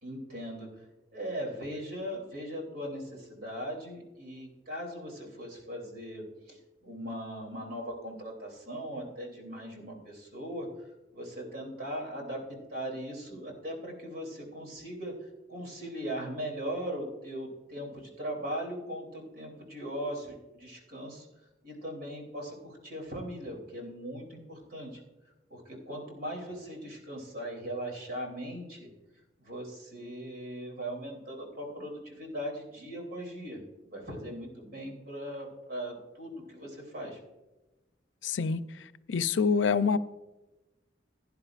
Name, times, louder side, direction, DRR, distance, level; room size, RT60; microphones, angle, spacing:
voice 1, 0.0-0.8 1.1-10.7 11.1-15.1 15.5-21.3 21.6-25.0 25.5-28.9 29.4-33.6 33.9-37.2, equal, 55° right, 1 dB, 3.0 m, -39 dB
voice 2, 38.2-38.6 39.1-40.0, left 5 dB, 90° left, 14 dB, 0.5 m, -26 dB
16.5 x 10.5 x 2.5 m, 1.1 s
head